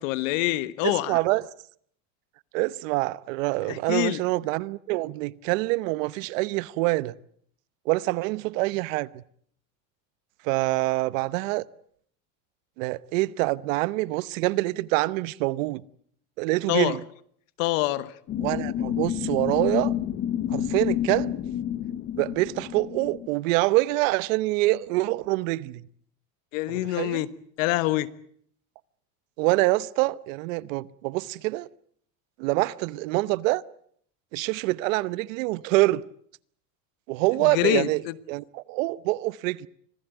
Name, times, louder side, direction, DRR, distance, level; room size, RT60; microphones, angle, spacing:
voice 1, 0.0-1.2 3.6-4.2 16.7-17.0 17.6-18.1 26.5-27.3 27.6-28.1 37.4-38.2, left 17 dB, 75° left, 1.4 m, -26 dB
voice 2, 0.8-1.4 2.5-7.1 7.9-9.2 10.4-11.6 12.8-15.8 16.4-17.0 18.4-19.9 20.5-21.3 22.2-25.8 26.7-27.2 29.4-31.7 32.4-33.6 34.3-36.0 37.1-38.0 38.3-39.7, right 20 dB, 75° right, 1.0 m, -25 dB
sound 1, 18.3-23.3, left 11 dB, 30° left, 1.0 m, -29 dB
25.5 x 17.0 x 9.1 m
cardioid pair, 170°, 39 cm